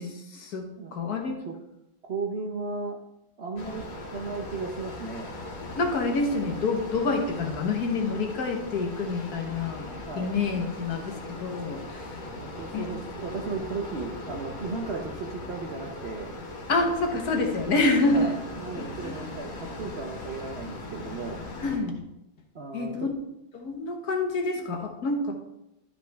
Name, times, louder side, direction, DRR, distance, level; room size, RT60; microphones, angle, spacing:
voice 1, 0.0-1.4 5.8-9.9 10.1-12.3 12.7-12.9 16.7-18.3 18.8-19.2 21.6-22.0 22.7-23.1 23.5-25.3, left 3 dB, 60° left, 3 dB, 1.5 m, -27 dB
voice 2, 2.1-3.0 3.4-5.3 10.0-10.4 12.4-16.3 18.1-21.4 22.5-23.1, right 4 dB, 60° right, 1 dB, 0.6 m, -35 dB
sound 1, 3.6-21.8, left 2 dB, 80° left, 2.1 m, -39 dB
12.0 x 5.4 x 3.4 m, 0.89 s
omnidirectional pair, 2.0 m